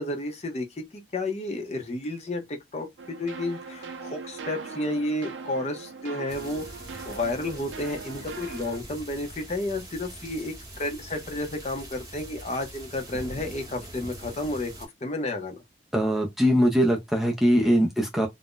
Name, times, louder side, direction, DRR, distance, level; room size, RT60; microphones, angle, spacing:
voice 1, 0.0-6.7 7.1-15.6, left 2 dB, 35° left, 0.6 m, -31 dB
sound 1, 3.0-8.8, right 5 dB, 80° right, 0.5 m, -40 dB
sound 2, 6.3-14.9, right 1 dB, 20° right, 0.9 m, -43 dB
voice 2, 15.9-18.3, equal, ahead, 0.4 m, -22 dB
2.5 x 2.1 x 3.6 m
head